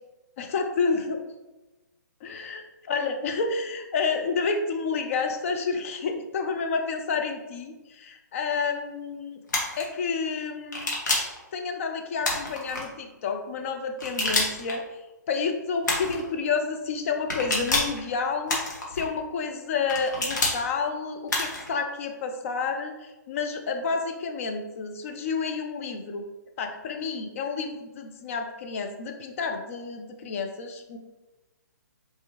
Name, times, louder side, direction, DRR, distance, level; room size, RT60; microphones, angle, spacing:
voice 1, 0.4-1.2 2.2-9.4 9.8-10.9 11.5-15.0 15.3-18.6 18.9-26.2 26.6-31.0, left 5 dB, 45° left, 5 dB, 0.6 m, -30 dB
sound 1, 9.5-9.8 10.7-11.4 12.2-12.8 14.0-14.7 15.8-16.2 17.3-18.0 18.5-19.0 19.9-20.6 21.3-21.7, left 2 dB, 75° left, 1.4 m, -27 dB
4.5 x 3.5 x 3.0 m, 1.1 s
figure-of-eight pair, 135°, 10 cm